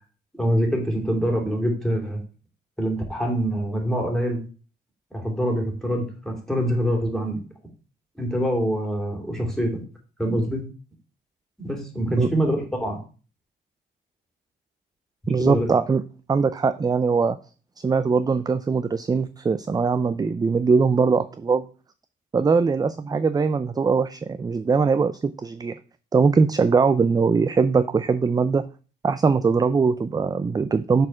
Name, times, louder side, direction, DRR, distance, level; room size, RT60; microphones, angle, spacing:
voice 1, 0.4-2.2 2.8-4.4 5.1-7.4 8.2-9.8 10.2-10.6 11.6-13.0 15.4-15.7, equal, ahead, 1 dB, 2.8 m, -25 dB
voice 2, 15.3-16.0 16.3-17.4 17.8-21.7 22.3-25.8 26.1-28.7 29.0-31.1, right 5 dB, 20° right, 12 dB, 0.4 m, -21 dB
6.5 x 4.3 x 5.9 m, 0.37 s
cardioid pair, 90°, 20 cm